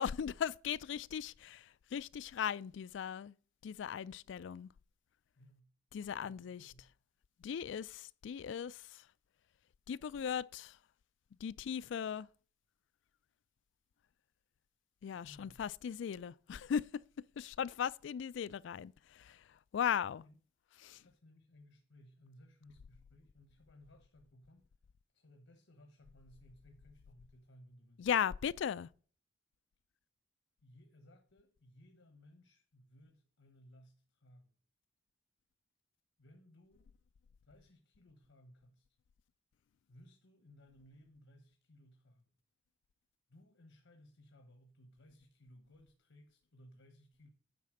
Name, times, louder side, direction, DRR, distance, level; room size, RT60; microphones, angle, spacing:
voice 1, 0.0-3.3 3.6-4.7 5.9-6.7 7.4-9.0 9.9-10.8 11.4-12.3 15.0-17.0 17.4-20.2 20.8-21.0 28.0-28.9, left 8 dB, 70° left, 0.3 m, -38 dB
voice 2, 5.4-5.7 6.2-6.9 15.2-15.6 20.0-20.4 20.9-24.7 25.1-28.1 30.6-34.5 36.2-36.9 37.4-38.9 39.9-42.3 43.3-47.3, left 1 dB, 85° left, 1.2 m, -61 dB
9.4 x 4.2 x 6.4 m
head